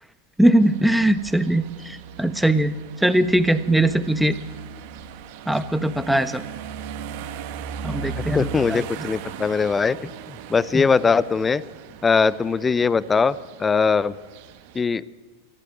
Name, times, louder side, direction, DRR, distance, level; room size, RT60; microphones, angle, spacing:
voice 1, 0.4-2.7 3.0-4.3 5.5-6.4 7.8-8.8 10.7-10.8, right 1 dB, ahead, 12 dB, 1.3 m, -20 dB
sound 1, 0.6-14.8, right 7 dB, 45° right, 2.1 m, -38 dB
voice 2, 8.2-10.0 10.3-11.6 12.0-14.1 14.7-15.0, left 5 dB, 15° left, 20 dB, 0.7 m, -21 dB
24.5 x 15.5 x 9.7 m, 1.4 s
figure-of-eight pair, 90°, 0 cm